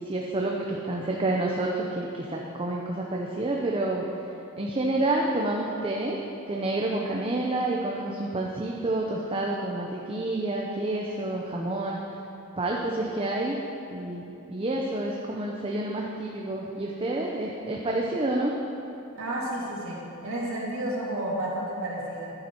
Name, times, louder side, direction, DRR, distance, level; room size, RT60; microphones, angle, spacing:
voice 1, 0.1-4.0 4.5-6.2 6.5-12.0 12.6-13.6 13.9-14.2 14.5-18.5, right 2 dB, 25° right, -2 dB, 0.8 m, -29 dB
voice 2, 19.1-22.3, right 1 dB, 70° right, -5 dB, 2.5 m, -31 dB
11.5 x 9.9 x 4.6 m, 2.8 s
head